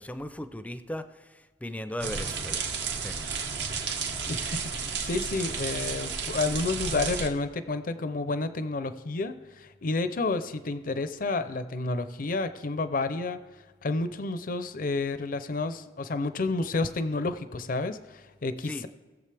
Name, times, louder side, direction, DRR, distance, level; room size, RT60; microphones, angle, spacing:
voice 1, 0.0-3.2 18.6-18.9, left 1 dB, 10° left, 10 dB, 0.5 m, -38 dB
sound 1, 2.0-7.3, right 5 dB, 80° right, 1.4 m, -32 dB
voice 2, 4.3-13.4 13.8-18.9, left 3 dB, 50° left, 11 dB, 0.6 m, -30 dB
20.0 x 7.2 x 3.4 m, 1.3 s
head